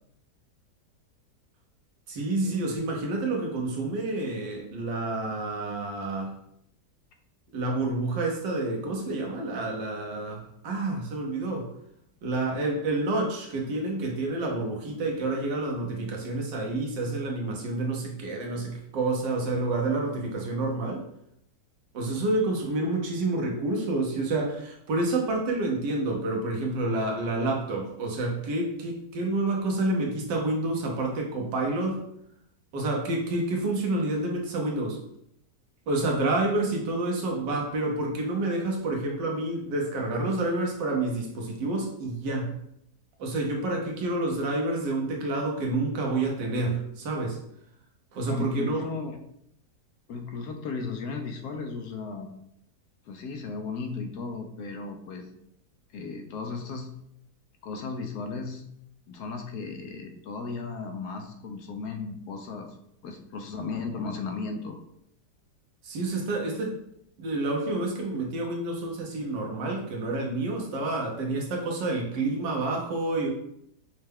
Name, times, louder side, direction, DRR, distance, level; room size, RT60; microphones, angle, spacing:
voice 1, 2.1-6.3 7.5-11.7 12.2-21.0 21.9-32.0 32.7-35.0 35.9-42.5 43.2-47.4 48.1-48.8 65.8-66.8 67.2-73.3, right 2 dB, 85° right, 0 dB, 1.5 m, -29 dB
voice 2, 48.3-49.2 50.1-52.3 53.1-55.3 55.9-56.9 57.6-58.6 59.1-62.7 63.0-64.8, left 4 dB, 70° left, 5 dB, 1.1 m, -35 dB
5.5 x 2.2 x 3.4 m, 0.74 s
omnidirectional pair, 1.9 m